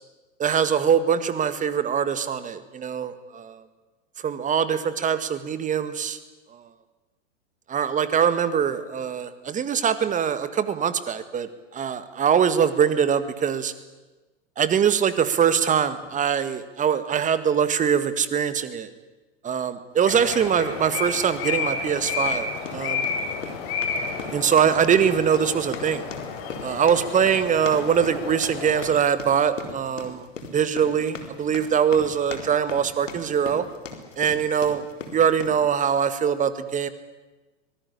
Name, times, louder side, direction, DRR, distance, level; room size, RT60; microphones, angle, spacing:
voice 1, 0.4-3.6 4.2-6.2 6.5-6.7 7.7-13.7 14.6-18.9 19.4-23.1 24.3-26.0 26.6-30.3 30.5-33.7 34.2-34.9 35.1-36.9, right 7 dB, 20° right, 12 dB, 1.9 m, -23 dB
sound 1, 20.1-28.9, left 5 dB, 50° left, 5.7 m, -31 dB
sound 2, 20.4-20.6 21.1-21.4 22.1-35.6, left 4 dB, 80° left, 4.2 m, -39 dB
24.0 x 19.0 x 10.0 m, 1.2 s
hypercardioid pair, 105°, 37 cm